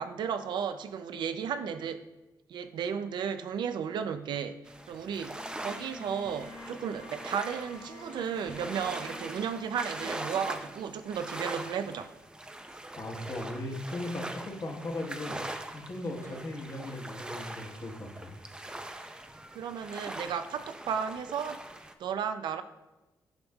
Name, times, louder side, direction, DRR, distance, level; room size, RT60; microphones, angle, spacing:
voice 1, 0.0-2.0 2.5-4.6 4.9-12.1 16.2-16.4 19.5-21.6 22.0-22.6, right 7 dB, 80° right, 10 dB, 0.4 m, -34 dB
sound 1, 4.7-21.9, right 1 dB, 10° right, 0.5 m, -42 dB
Bowed string instrument, 5.3-11.0, left 2 dB, 90° left, 1.8 m, -49 dB
voice 2, 12.9-15.4 15.7-18.3, left 1 dB, 45° left, 1 dB, 1.3 m, -37 dB
10.5 x 5.4 x 2.3 m, 1.1 s
cardioid pair, 95°, 8 cm